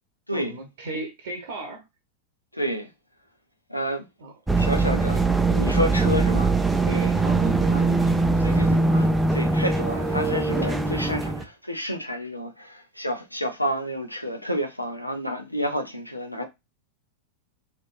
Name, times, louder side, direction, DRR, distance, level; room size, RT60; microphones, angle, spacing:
voice 1, 0.3-1.8 4.2-4.3 6.9-8.7, right 2 dB, 55° right, 0.8 m, -36 dB
voice 2, 2.5-2.9 3.7-4.1 4.6-5.2 5.5-6.5 7.7-7.8 8.4-16.4, equal, 85° left, 0.6 m, -29 dB
sound 1, 4.5-11.4, right 3 dB, 5° right, 0.4 m, -22 dB
3.3 x 2.6 x 2.5 m
figure-of-eight pair, 90°, 0 cm